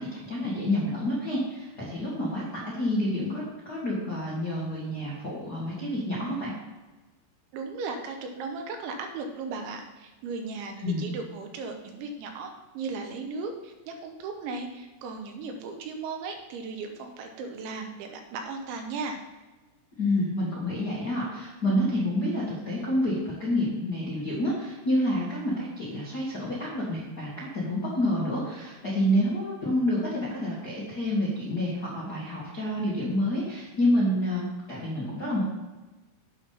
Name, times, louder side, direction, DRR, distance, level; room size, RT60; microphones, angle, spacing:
voice 1, 0.0-2.4 2.7-6.5 10.8-11.0 20.0-35.4, left 1 dB, 90° left, -7 dB, 0.8 m, -28 dB
voice 2, 7.5-19.2, right 4 dB, 80° right, 4 dB, 3.1 m, -36 dB
8.5 x 5.8 x 5.7 m, 1.2 s
omnidirectional pair, 5.7 m